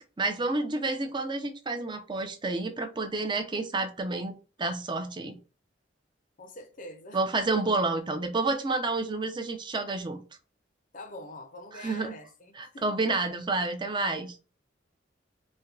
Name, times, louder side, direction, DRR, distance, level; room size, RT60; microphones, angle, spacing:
voice 1, 0.2-5.3 7.1-10.2 11.7-12.1 12.6-14.4, right 3 dB, 25° right, 0.6 m, -29 dB
voice 2, 6.4-7.2 10.9-13.0, left 1 dB, 45° left, 0.7 m, -45 dB
4.3 x 2.2 x 2.4 m
head